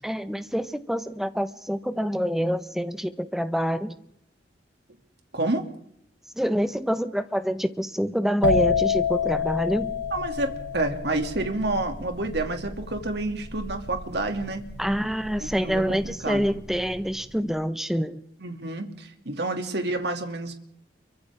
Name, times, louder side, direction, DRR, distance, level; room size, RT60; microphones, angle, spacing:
voice 1, 0.0-4.0 6.4-9.9 14.8-18.2, equal, ahead, 1.2 m, -26 dB
sound 1, 8.4-16.0 16.3-16.8, left 5 dB, 70° left, 8.0 m, -28 dB
voice 2, 10.1-14.6 15.4-16.5 18.4-20.5, right 2 dB, 65° right, 2.7 m, -29 dB
29.5 x 24.0 x 3.7 m
head